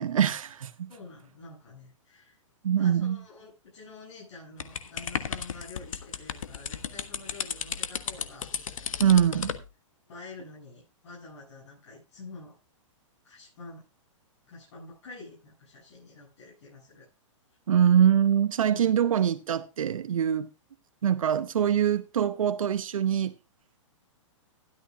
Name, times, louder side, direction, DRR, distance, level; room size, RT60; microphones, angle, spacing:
voice 1, 0.0-0.9 2.6-3.2 9.0-9.5 17.7-20.5 21.0-23.3, right 9 dB, 85° right, 0.9 m, -23 dB
voice 2, 0.9-2.4 2.7-8.5 9.0-9.4 10.1-12.6 13.2-13.9 14.5-17.1 18.7-18.9, left 3 dB, 60° left, 7.3 m, -47 dB
sound 1, 4.6-9.6, left 7 dB, 90° left, 1.3 m, -34 dB
13.5 x 12.5 x 2.4 m
hypercardioid pair, 145°, 17 cm